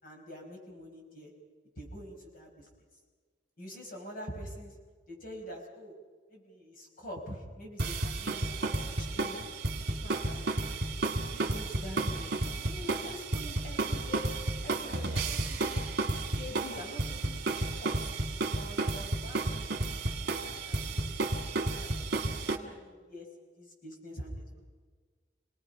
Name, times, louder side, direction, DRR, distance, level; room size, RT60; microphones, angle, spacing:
voice 1, 0.0-1.3 1.8-2.7 3.6-4.7 5.1-5.9 6.3-9.5 9.9-10.6 11.3-12.3 12.6-14.3 14.6-15.9 16.4-17.4 17.8-18.1 18.5-21.4 21.7-21.9 22.3-24.6, equal, 50° left, 1 dB, 5.3 m, -46 dB
sound 1, 7.8-22.6, right 2 dB, 60° right, 2.0 m, -32 dB
28.5 x 19.0 x 5.6 m, 1.5 s
head